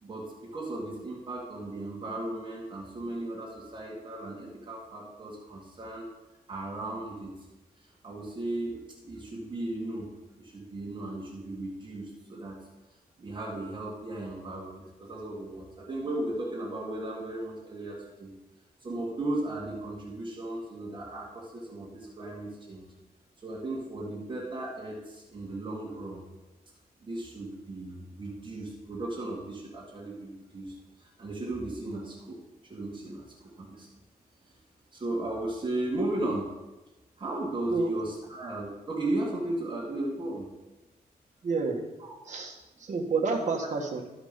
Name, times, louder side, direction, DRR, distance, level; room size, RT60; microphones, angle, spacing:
voice 1, 0.0-6.1 6.5-7.3 8.0-8.8 9.0-10.1 10.4-12.6 13.2-18.3 18.8-22.9 23.4-26.2 27.0-32.4 32.7-33.9 34.9-36.5 37.2-40.5 42.0-42.1, right 2 dB, 30° right, -5 dB, 1.8 m, -36 dB
voice 2, 37.7-38.0 41.4-41.8 42.2-44.0, right 4 dB, 50° right, 0 dB, 1.6 m, -29 dB
13.5 x 5.0 x 5.1 m, 1.1 s
wide cardioid pair, 160°, 16 cm